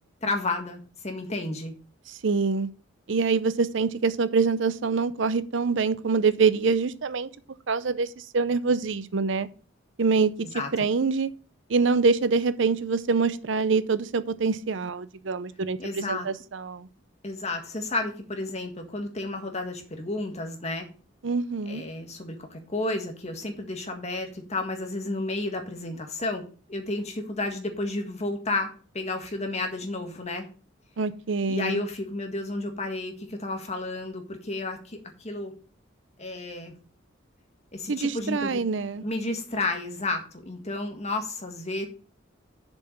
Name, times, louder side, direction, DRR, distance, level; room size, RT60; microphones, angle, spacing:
voice 1, 0.2-1.7 10.5-10.7 15.8-16.3 17.2-20.9 21.6-30.5 31.5-35.5 36.2-36.7 37.7-38.6 39.0-41.9, left 2 dB, 35° left, 1.7 m, -32 dB
voice 2, 2.1-2.7 3.1-7.3 7.7-9.5 10.0-10.3 10.7-11.3 11.7-16.9 21.2-21.8 31.0-31.8 37.9-39.0, right 4 dB, 70° right, 0.6 m, -25 dB
7.0 x 5.8 x 6.8 m
head